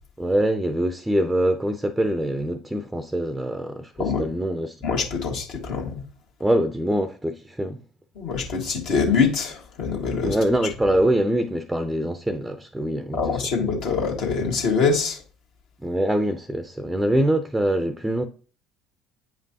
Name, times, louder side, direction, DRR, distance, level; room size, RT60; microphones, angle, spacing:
voice 1, 0.2-4.8 6.4-7.8 10.2-13.7 15.8-18.3, right 1 dB, 5° right, 0.6 m, -24 dB
voice 2, 4.8-6.0 8.2-10.4 13.1-15.2, left 5 dB, 60° left, 1.8 m, -24 dB
8.8 x 5.1 x 2.8 m
figure-of-eight pair, 60°, 0 cm